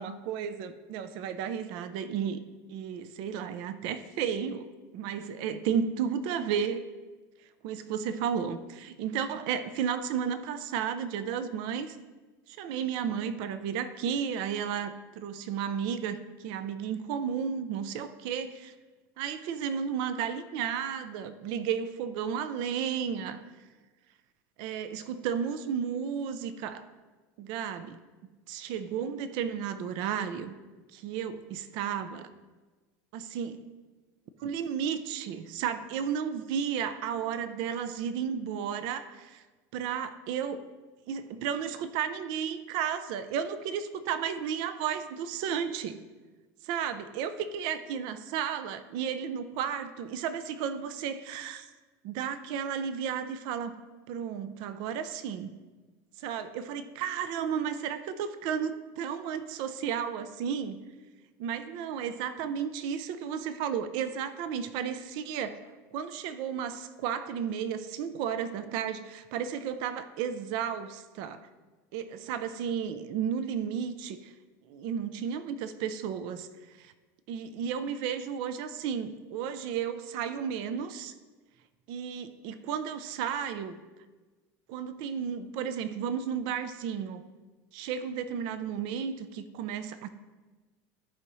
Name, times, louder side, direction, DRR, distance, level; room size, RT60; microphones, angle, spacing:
voice 1, 0.0-2.4 2.7-4.7 4.9-6.8 7.6-12.0 12.5-18.7 19.2-23.4 24.6-26.9 27.4-28.0 28.5-30.5 30.9-32.3 33.1-33.6 34.4-39.4 39.7-40.7 41.1-46.0 46.6-51.7 52.0-53.8 54.1-55.5 56.2-60.8 61.4-65.6 65.9-71.5 71.9-74.3 74.7-76.5 76.8-76.9 77.3-81.1 81.9-83.8 84.7-87.2 87.7-90.1, right 8 dB, 65° right, 11 dB, 0.6 m, -33 dB
14.0 x 4.9 x 3.1 m, 1.3 s
supercardioid pair, 125°, 8 cm